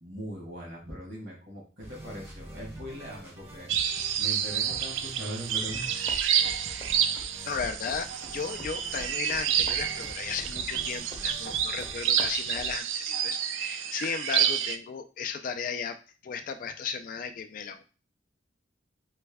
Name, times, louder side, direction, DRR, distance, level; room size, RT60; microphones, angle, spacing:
voice 1, 0.0-5.9, equal, 60° right, -1 dB, 1.4 m, -40 dB
sound 1, 1.8-12.1, right 1 dB, 15° right, 0.7 m, -47 dB
sound 2, 3.7-14.8, right 9 dB, 85° right, 0.3 m, -29 dB
sound 3, 5.8-12.8, left 1 dB, 30° left, 0.7 m, -45 dB
voice 2, 7.4-16.0 16.2-17.8, left 6 dB, 45° left, 7 dB, 0.3 m, -35 dB
3.2 x 2.2 x 3.4 m, 0.35 s
head